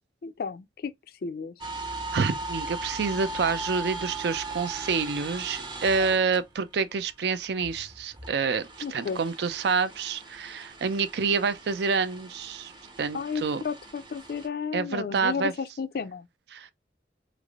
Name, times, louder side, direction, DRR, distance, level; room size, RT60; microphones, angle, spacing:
voice 1, 0.2-0.9 1.2-1.5 8.8-9.2 13.1-16.3, left 6 dB, 55° left, 0.3 m, -33 dB
sound 1, 1.6-6.8 7.2-14.5, right 2 dB, 25° right, 0.6 m, -39 dB
voice 2, 2.1-12.7 13.0-13.6 14.7-15.5 16.5-16.7, right 5 dB, 70° right, 0.4 m, -28 dB
3.2 x 2.5 x 2.3 m
head